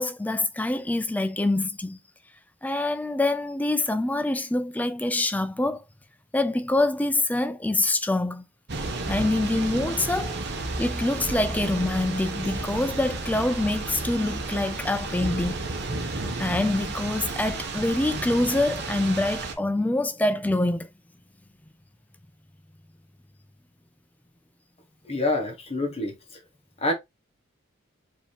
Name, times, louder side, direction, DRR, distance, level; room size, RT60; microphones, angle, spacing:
voice 1, 0.0-2.0 2.6-5.8 6.3-8.5 9.1-10.4 10.8-15.7 16.0-20.9, left 2 dB, 5° left, 0.3 m, -25 dB
Thunder / Rain, 8.7-19.5, right 2 dB, 50° right, 0.9 m, -32 dB
voice 2, 25.0-26.1 26.8-26.9, left 2 dB, 30° left, 1.3 m, -26 dB
4.8 x 2.8 x 3.4 m
head